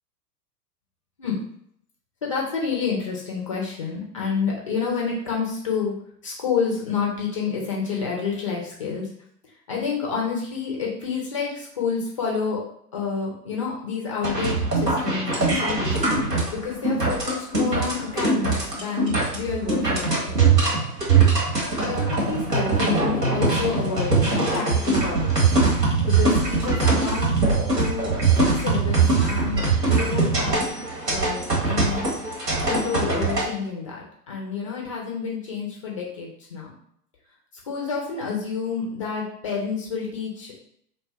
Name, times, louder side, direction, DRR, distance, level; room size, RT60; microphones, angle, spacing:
voice 1, 2.2-5.9 6.2-9.1 9.7-12.6 12.9-15.9 16.5-20.3 21.8-27.4 27.8-30.6 31.1-32.1 32.7-36.7 37.7-40.6, left 5 dB, 25° left, -2 dB, 0.3 m, -29 dB
sound 1, 14.2-33.4, right 3 dB, 90° right, 1.3 m, -22 dB
2.6 x 2.1 x 3.4 m, 0.68 s
figure-of-eight pair, 100°, 49 cm